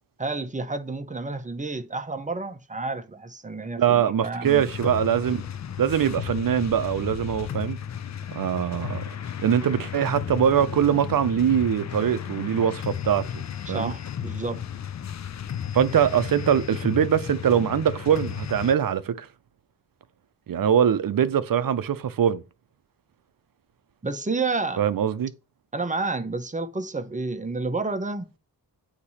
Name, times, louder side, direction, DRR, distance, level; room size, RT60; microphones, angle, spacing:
voice 1, 0.2-4.7 13.7-14.6 24.0-24.8 25.7-28.3, right 3 dB, 20° right, 0.9 m, -30 dB
voice 2, 3.8-5.4 5.8-7.8 8.3-9.1 9.4-13.4 13.7-13.9 15.7-19.3 20.5-22.4 24.8-25.3, right 9 dB, 60° right, 0.7 m, -22 dB
sound 1, 4.4-18.7, left 9 dB, 45° left, 0.5 m, -34 dB
8.2 x 2.9 x 4.2 m
cardioid pair, 55°, 39 cm